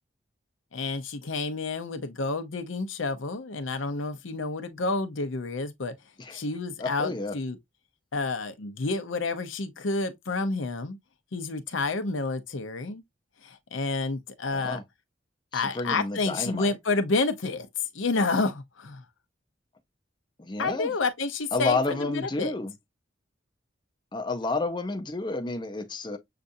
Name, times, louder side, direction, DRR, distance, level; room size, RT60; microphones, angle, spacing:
voice 1, 0.7-5.9 6.3-7.6 8.1-11.0 11.3-13.0 13.4-14.8 15.5-17.7 17.9-19.0 20.6-22.5, left 3 dB, 80° left, 0.7 m, -29 dB
voice 2, 6.8-7.4 14.5-14.8 15.5-16.7 20.4-20.9 21.5-22.7 24.1-26.2, left 3 dB, 25° left, 0.6 m, -30 dB
6.7 x 2.5 x 2.6 m
head